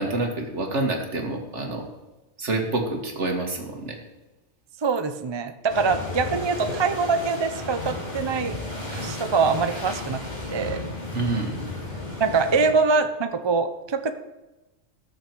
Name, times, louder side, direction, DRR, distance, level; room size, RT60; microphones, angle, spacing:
voice 1, 0.0-1.9 2.4-4.0 11.1-11.6, right 2 dB, 60° right, 3 dB, 2.1 m, -27 dB
voice 2, 4.8-8.6 8.9-10.2 10.5-10.8 12.2-14.1, right 4 dB, 30° right, 9 dB, 0.5 m, -24 dB
sound 1, 5.7-12.7, left 2 dB, 30° left, 2.8 m, -33 dB
19.0 x 6.6 x 4.7 m, 1.1 s
omnidirectional pair, 1.4 m